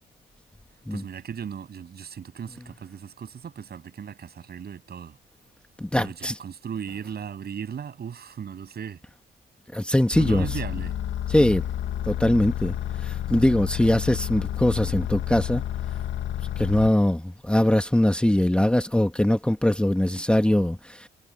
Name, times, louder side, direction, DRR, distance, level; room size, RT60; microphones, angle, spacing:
voice 1, 0.9-5.2 6.0-9.0 10.2-11.0, right 7 dB, 55° right, 7.9 m, -37 dB
voice 2, 5.8-6.3 9.7-10.5 11.3-11.7 12.1-15.6 16.6-21.1, left 1 dB, 5° left, 1.9 m, -22 dB
sound 1, 10.1-16.9, left 11 dB, 75° left, 2.1 m, -30 dB
cardioid pair, 90°, 20 cm